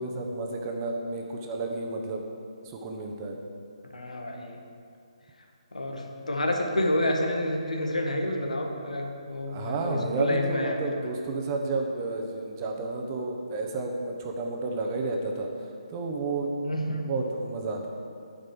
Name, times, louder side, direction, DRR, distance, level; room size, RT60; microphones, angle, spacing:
voice 1, 0.0-2.2 2.6-3.4 9.5-15.5 15.9-16.5 17.0-17.9, right 3 dB, 30° right, 2 dB, 1.1 m, -31 dB
voice 2, 3.9-4.6 5.7-10.9 16.6-17.0, left 1 dB, 90° left, 2 dB, 1.5 m, -29 dB
9.8 x 5.3 x 6.9 m, 2.4 s
figure-of-eight pair, 150°, 4 cm